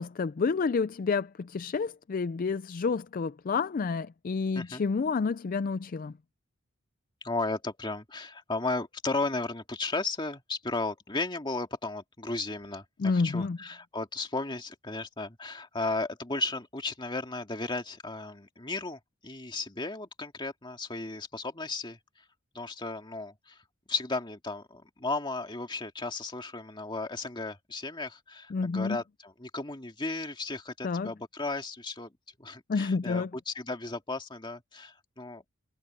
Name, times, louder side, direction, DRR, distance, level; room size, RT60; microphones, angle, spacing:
voice 1, 0.0-6.1 13.0-13.6 28.5-29.0 30.8-31.1 32.7-33.3, left 4 dB, 40° left, 0.4 m, -29 dB
voice 2, 7.2-22.2 22.5-23.6 23.9-32.1 32.4-35.5, left 3 dB, 25° left, 2.2 m, -35 dB
head